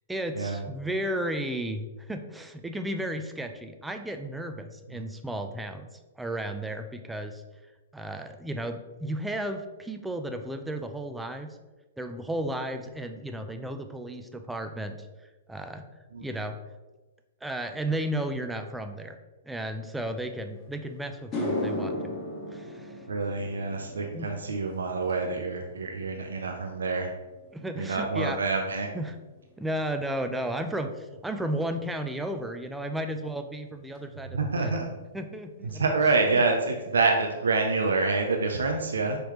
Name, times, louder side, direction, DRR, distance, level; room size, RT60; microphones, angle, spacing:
voice 1, 0.1-5.9 6.2-7.4 7.9-11.6 12.0-15.1 15.5-15.8 16.2-16.6 17.4-19.2 19.4-22.2 22.5-23.1 24.1-24.3 27.5-28.4 28.9-29.2 29.6-34.7 35.1-35.8, right 1 dB, 5° right, 6 dB, 0.4 m, -34 dB
sound 1, 20.6-20.7 21.1-29.6 29.9-30.3 33.9-34.0 35.7-35.8 36.1-36.2 36.5-37.0, left 1 dB, 25° left, 1.1 m, -38 dB
voice 2, 23.1-27.1 27.8-28.9 34.3-34.9 35.6-39.2, right 3 dB, 85° right, 3 dB, 0.4 m, -27 dB
4.9 x 3.1 x 3.0 m, 1.2 s
hypercardioid pair, 125°, 0 cm